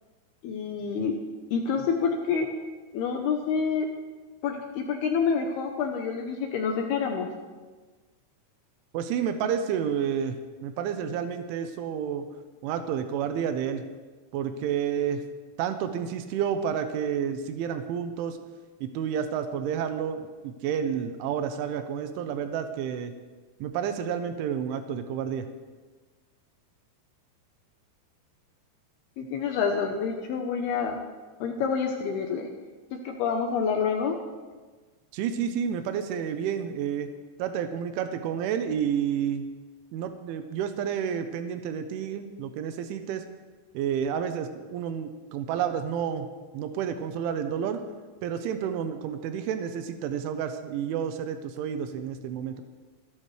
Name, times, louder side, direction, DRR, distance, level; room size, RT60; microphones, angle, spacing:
voice 1, 0.4-1.2 1.5-2.6 2.9-3.9 4.4-7.3 29.2-31.0 31.4-32.5 32.9-34.2, left 6 dB, 75° left, 3 dB, 2.6 m, -27 dB
voice 2, 8.9-12.3 12.6-13.8 14.3-15.2 15.6-18.4 18.8-23.1 23.6-25.5 35.1-37.1 37.4-39.5 39.9-43.2 43.8-46.3 46.5-47.8 48.2-52.6, right 8 dB, 90° right, 8 dB, 3.4 m, -30 dB
29.0 x 12.0 x 3.3 m, 1.3 s
omnidirectional pair, 5.4 m